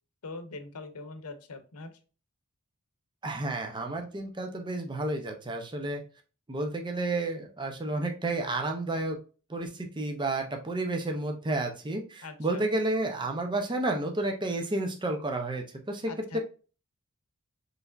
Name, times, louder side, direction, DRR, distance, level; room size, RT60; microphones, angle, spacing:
voice 1, 0.2-1.9 12.2-12.6 16.1-16.4, left 3 dB, 85° left, 9 dB, 0.7 m, -42 dB
voice 2, 3.2-6.0 6.5-9.2 9.5-16.4, right 2 dB, 20° right, 3 dB, 0.6 m, -31 dB
4.6 x 3.2 x 2.5 m, 0.35 s
head